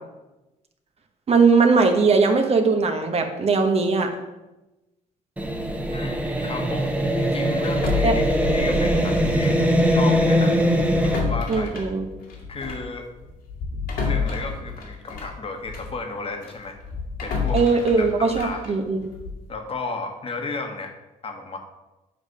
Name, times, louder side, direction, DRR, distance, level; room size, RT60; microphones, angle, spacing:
voice 1, 1.3-4.1 8.0-8.1 11.5-12.1 17.5-19.0, right 4 dB, 45° right, 5 dB, 1.0 m, -19 dB
sound 1, 5.4-11.2, equal, 10° right, 0.9 m, -21 dB
voice 2, 5.9-6.9 7.2-8.2 8.5-10.6 11.0-11.7 12.5-13.1 14.0-16.8 17.2-17.6 18.0-18.8 19.5-20.9 21.2-21.6, left 3 dB, 40° left, 4 dB, 1.2 m, -33 dB
sound 2, 7.6-9.7 9.9-10.1 10.7-16.0 16.4-19.5, left 5 dB, 80° left, 1.8 m, -30 dB
7.9 x 3.4 x 6.4 m, 1.0 s
cardioid pair, 95°, 15 cm